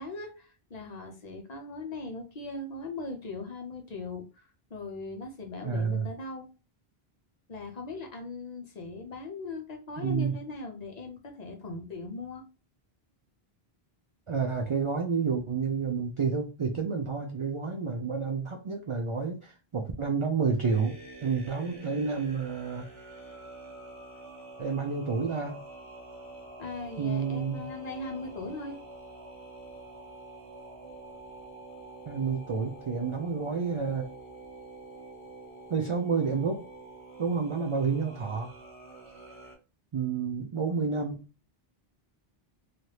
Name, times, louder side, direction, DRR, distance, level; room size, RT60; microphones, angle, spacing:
voice 1, 0.0-6.5 7.5-12.4 26.6-28.8, left 3 dB, 50° left, 3 dB, 0.6 m, -39 dB
voice 2, 5.6-6.1 10.0-10.3 14.3-21.0 21.2-22.9 24.6-25.6 27.0-27.7 32.1-34.1 35.7-36.6 37.2-38.5 39.9-41.2, right 5 dB, 55° right, 2 dB, 0.3 m, -29 dB
sound 1, 20.6-39.5, right 2 dB, 35° right, 1.4 m, -47 dB
3.2 x 2.4 x 2.8 m, 0.32 s
omnidirectional pair, 1.0 m